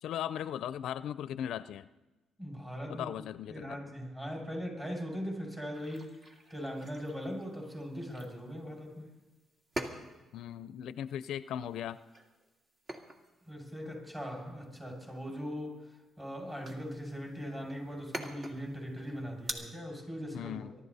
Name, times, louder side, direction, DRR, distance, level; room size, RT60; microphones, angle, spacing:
voice 1, 0.0-1.9 2.9-3.8 10.3-12.0 20.3-20.7, left 10 dB, 80° left, 15 dB, 0.4 m, -38 dB
voice 2, 2.4-9.1 13.5-20.7, equal, 15° right, 0 dB, 6.3 m, -40 dB
sound 1, 5.7-19.5, right 1 dB, 40° right, 2.1 m, -47 dB
23.5 x 12.0 x 4.1 m, 1.1 s
cardioid pair, 90°, 0 cm